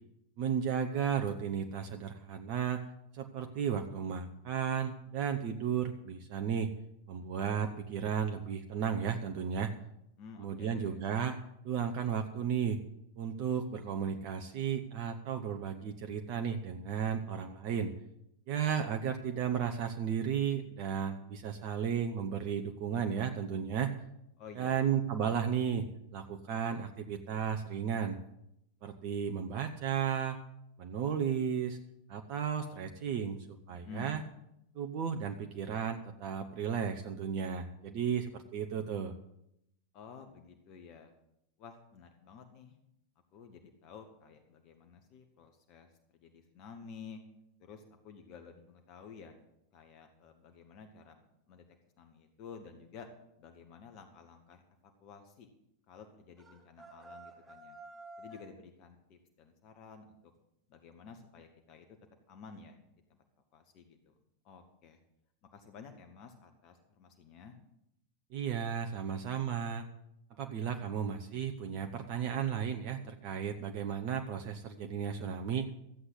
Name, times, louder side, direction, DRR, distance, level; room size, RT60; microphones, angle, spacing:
voice 1, 0.4-2.8 3.1-6.7 7.1-9.7 10.4-11.4 11.6-12.8 13.2-17.9 18.5-23.9 24.6-25.9 26.1-28.2 28.8-30.4 30.8-31.8 32.1-33.4 33.7-34.2 34.7-39.1 68.3-69.8 70.4-75.7, right 7 dB, 45° right, 5 dB, 0.9 m, -34 dB
voice 2, 10.2-11.0 24.4-24.9 33.7-34.2 39.9-41.1 41.6-42.8 43.3-47.2 47.6-49.3 49.7-51.6 52.0-53.1 53.4-55.5 55.9-57.8 58.2-60.3 60.7-61.9 62.3-62.8 63.1-63.2 63.5-64.2 64.4-65.0 65.4-67.6, left 5 dB, 40° left, 6 dB, 1.5 m, -52 dB
sound 1, 56.4-58.5, right 2 dB, 15° right, 5.3 m, -51 dB
14.0 x 8.0 x 8.0 m, 0.81 s
figure-of-eight pair, 90°, 0 cm